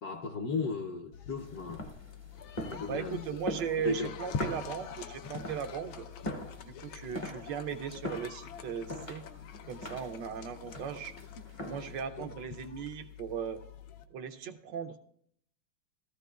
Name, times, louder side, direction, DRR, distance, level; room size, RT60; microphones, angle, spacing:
voice 1, 0.0-1.8 2.7-3.3 3.8-4.2 6.2-6.3 12.2-12.3, left 3 dB, 65° left, 1.0 m, -35 dB
sound 1, 1.1-14.0, left 7 dB, 80° left, 1.5 m, -45 dB
sound 2, 1.4-12.1, left 1 dB, 35° left, 0.5 m, -43 dB
voice 2, 2.9-6.1 6.6-9.2 9.7-11.2 11.6-13.6 14.1-15.1, right 8 dB, 75° right, 1.2 m, -38 dB
15.5 x 13.5 x 2.3 m
omnidirectional pair, 2.2 m